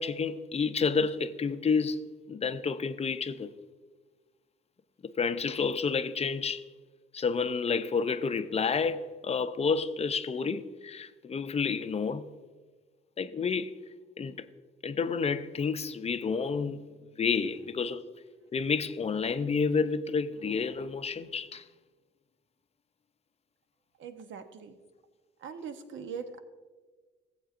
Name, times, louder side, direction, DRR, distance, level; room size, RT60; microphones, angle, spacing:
voice 1, 0.0-3.5 5.0-6.6 7.1-12.3 13.2-13.7 14.2-14.5 14.8-16.8 17.2-18.0 18.5-21.6, left 5 dB, 30° left, 0.5 m, -30 dB
voice 2, 24.0-24.8 25.4-26.4, right 6 dB, 75° right, 0.9 m, -41 dB
15.0 x 8.1 x 2.5 m
cardioid pair, 90°, 20 cm